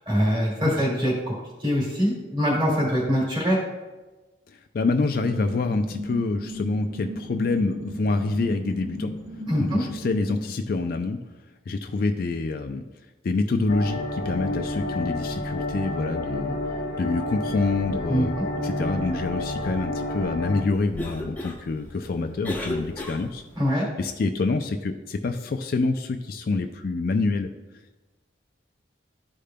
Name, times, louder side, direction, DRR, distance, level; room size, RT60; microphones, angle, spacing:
voice 1, 0.1-1.3 1.6-3.6 9.5-9.8 18.1-18.4 23.6-23.9, equal, 25° right, -4 dB, 2.0 m, -23 dB
voice 2, 4.5-9.1 9.6-11.2 11.7-12.8 13.2-16.6 17.0-18.3 18.6-23.4 24.0-27.5, left 3 dB, 50° left, 5 dB, 0.3 m, -26 dB
sound 1, 5.2-10.4, equal, 80° right, 1.0 m, -35 dB
sound 2, 13.7-20.6, left 1 dB, 85° left, 0.9 m, -30 dB
Cough, 20.7-23.6, left 1 dB, 10° left, 0.7 m, -35 dB
12.5 x 5.0 x 2.2 m, 1.2 s
head